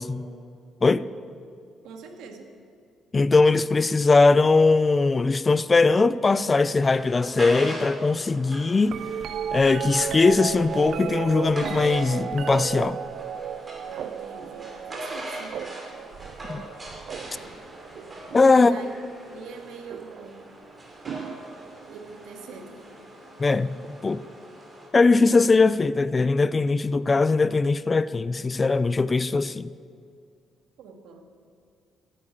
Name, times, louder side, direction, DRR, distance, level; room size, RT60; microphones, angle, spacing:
voice 1, 1.8-2.5 13.9-15.7 18.5-18.9 19.3-20.4 21.9-22.9 30.8-31.2, right 4 dB, 85° right, 2.2 m, -44 dB
voice 2, 3.1-9.0 9.5-13.0 16.5-16.6 18.3-18.7 23.4-24.2 24.9-29.7, left 3 dB, 20° left, 0.4 m, -20 dB
sound 1, 6.8-24.9, right 1 dB, 20° right, 2.9 m, -41 dB
sound 2, 8.8-19.0 19.9-20.3 21.1-22.0 23.8-23.9, right 8 dB, 55° right, 0.5 m, -34 dB
16.5 x 10.0 x 8.6 m
cardioid pair, 155°, 0 cm